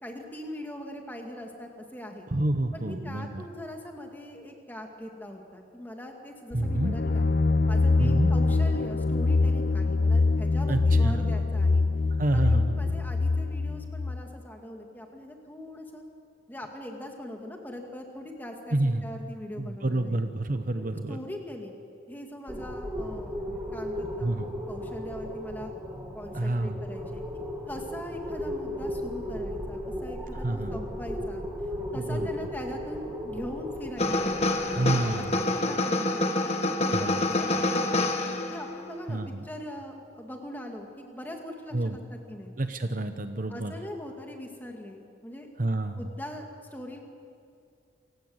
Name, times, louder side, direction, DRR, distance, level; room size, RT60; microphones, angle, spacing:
voice 1, 0.0-2.3 2.7-7.3 7.7-11.8 12.3-16.0 16.5-20.2 20.8-21.8 22.1-23.3 23.7-25.7 26.1-27.2 27.7-34.3 34.8-38.1 38.5-42.5 43.5-45.5 46.0-47.0, left 1 dB, 10° left, 2 dB, 2.3 m, -41 dB
voice 2, 2.3-3.4 6.5-7.0 8.0-8.3 10.7-11.3 12.1-13.0 18.7-19.1 19.6-21.2 24.2-24.5 26.3-26.8 30.3-30.8 31.9-32.3 34.7-35.3 36.9-37.2 39.1-39.4 41.7-42.0 42.6-43.7 45.6-46.0, right 2 dB, 45° right, 8 dB, 0.9 m, -29 dB
sound 1, 6.5-14.2, left 3 dB, 50° left, 0.5 m, -24 dB
sound 2, 22.5-35.2, equal, 10° right, 2.3 m, -36 dB
sound 3, 34.0-38.8, left 2 dB, 35° left, 1.6 m, -27 dB
28.0 x 16.0 x 8.0 m, 2.5 s
head